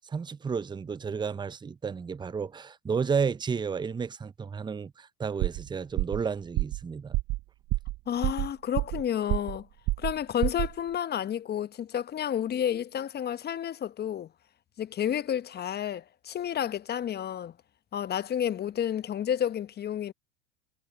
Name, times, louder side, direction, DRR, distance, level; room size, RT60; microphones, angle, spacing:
voice 1, 0.1-7.2, right 6 dB, 15° right, 0.8 m, -32 dB
sound 1, 5.4-5.7 6.0-6.2 6.6-6.8 7.1-7.4 7.7-8.0 8.2-9.0 9.3-9.6 9.9-10.2 10.4-10.7, right 19 dB, 45° right, 1.1 m, -28 dB
voice 2, 8.1-9.7 10.0-14.3 14.8-17.5 17.9-20.1, left 9 dB, 30° left, 1.2 m, -30 dB
hypercardioid pair, 85°, 34 cm